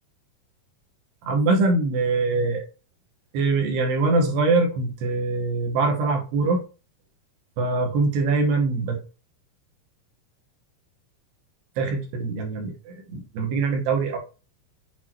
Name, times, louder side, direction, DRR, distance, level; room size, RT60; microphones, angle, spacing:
voice 1, 1.2-2.7 3.3-6.6 7.6-9.0 11.8-14.2, right 3 dB, 90° right, 2 dB, 3.5 m, -23 dB
8.4 x 4.0 x 3.0 m, 0.32 s
omnidirectional pair, 4.6 m